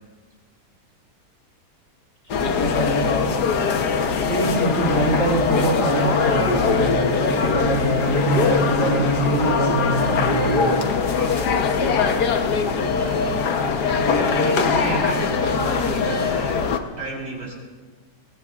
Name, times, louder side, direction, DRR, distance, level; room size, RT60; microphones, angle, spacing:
sound 1, 2.3-16.8, left 5 dB, 70° left, 1.6 m, -22 dB
voice 1, 2.4-3.3 4.2-10.8, equal, 45° left, -2 dB, 3.3 m, -24 dB
sound 2, 4.3-10.9, right 7 dB, 85° right, 1.4 m, -31 dB
voice 2, 11.1-11.6 12.7-13.3 14.0-16.6 17.0-17.6, right 2 dB, 55° right, -1 dB, 5.0 m, -31 dB
26.5 x 22.0 x 2.5 m, 1.4 s
omnidirectional pair, 1.9 m